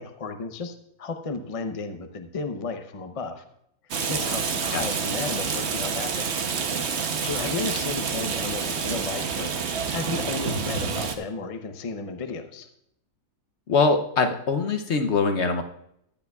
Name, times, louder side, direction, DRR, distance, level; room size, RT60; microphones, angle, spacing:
voice 1, 0.0-3.4 4.1-6.3 7.2-12.7, left 4 dB, 40° left, 7 dB, 0.5 m, -33 dB
Rain, 3.9-11.2, right 6 dB, 50° right, 1.0 m, -28 dB
voice 2, 13.7-15.6, left 4 dB, 55° left, 6 dB, 0.9 m, -23 dB
15.0 x 10.5 x 2.3 m, 0.74 s
omnidirectional pair, 1.6 m